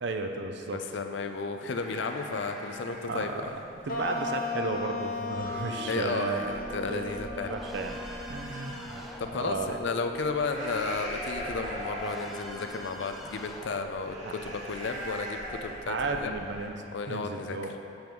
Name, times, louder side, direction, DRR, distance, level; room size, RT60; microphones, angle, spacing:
voice 1, 0.0-0.8 3.1-3.4 3.9-6.5 6.8-7.1 7.5-8.0 8.3-9.0 9.3-9.7 13.7-13.8 14.2-14.6 15.9-16.8 17.1-17.7, right 3 dB, 55° right, 5 dB, 0.5 m, -34 dB
voice 2, 0.7-3.5 5.9-7.5 9.2-16.3 16.9-17.8, left 4 dB, 60° left, 6 dB, 0.4 m, -33 dB
sound 1, 1.7-16.7, equal, 35° right, 1.5 m, -42 dB
sound 2, 3.9-10.6, left 3 dB, 45° left, 0.8 m, -37 dB
sound 3, 5.3-14.5, equal, ahead, 0.5 m, -44 dB
7.8 x 5.3 x 4.6 m, 2.9 s
head